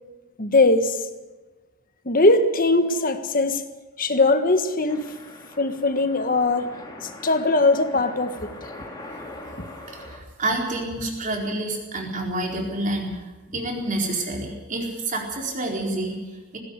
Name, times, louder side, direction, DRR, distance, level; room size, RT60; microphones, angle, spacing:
voice 1, 0.4-1.0 2.0-3.6 4.0-5.2 5.6-6.8 7.0-8.5, left 2 dB, 40° left, 9 dB, 1.5 m, -20 dB
sound 1, 4.9-10.2, left 1 dB, 20° left, 3.3 m, -41 dB
voice 2, 9.9-16.6, right 2 dB, 35° right, 0 dB, 4.3 m, -28 dB
19.0 x 17.0 x 8.3 m, 1.2 s
head